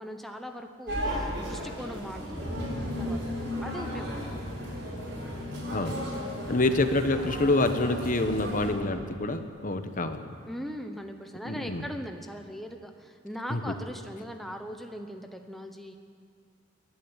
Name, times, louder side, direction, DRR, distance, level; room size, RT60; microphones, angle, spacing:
voice 1, 0.0-2.6 3.0-4.2 10.5-16.0, equal, ahead, 4 dB, 1.0 m, -40 dB
sound 1, 0.9-8.7, equal, 60° right, 7.3 m, -34 dB
voice 2, 6.5-10.2 11.4-11.8 13.5-13.6, left 2 dB, 40° left, 8 dB, 1.2 m, -27 dB
29.0 x 11.5 x 9.0 m, 2.2 s
head